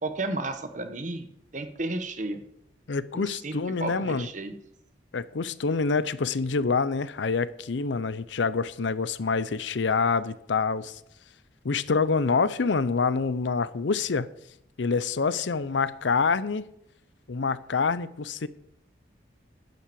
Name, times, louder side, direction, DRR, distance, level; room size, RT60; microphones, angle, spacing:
voice 1, 0.0-1.3 1.5-2.4 3.1-3.5 3.8-4.5, right 2 dB, 40° right, 1.0 m, -32 dB
voice 2, 2.9-4.3 5.1-11.0 11.6-14.3 14.8-16.6 17.3-18.5, left 4 dB, 75° left, 0.6 m, -26 dB
10.5 x 7.5 x 6.8 m
head